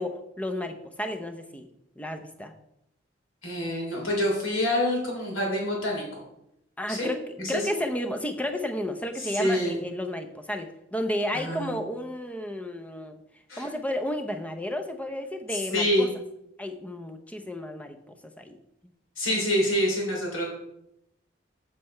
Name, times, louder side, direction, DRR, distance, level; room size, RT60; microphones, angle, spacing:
voice 1, 0.0-1.7 2.0-2.5 6.8-7.2 7.5-13.1 13.6-16.1 16.6-18.0 18.4-18.6, left 1 dB, 5° left, 6 dB, 0.6 m, -32 dB
voice 2, 3.4-6.0 6.9-7.1 7.4-7.6 9.2-9.8 11.3-11.8 13.5-13.7 15.7-16.1 19.2-20.5, left 1 dB, 80° left, -1 dB, 3.2 m, -26 dB
7.6 x 7.6 x 4.4 m, 0.82 s
head